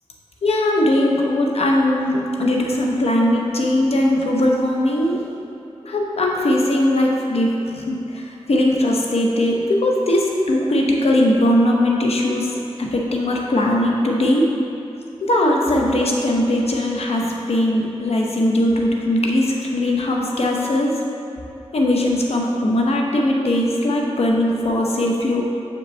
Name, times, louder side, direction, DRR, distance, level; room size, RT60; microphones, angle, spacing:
voice 1, 0.4-5.2 5.8-12.5 12.8-14.5 15.2-20.9 21.7-25.4, left 1 dB, 70° left, -1 dB, 0.8 m, -19 dB
6.6 x 5.3 x 3.3 m, 2.9 s
cardioid pair, 55°, 11 cm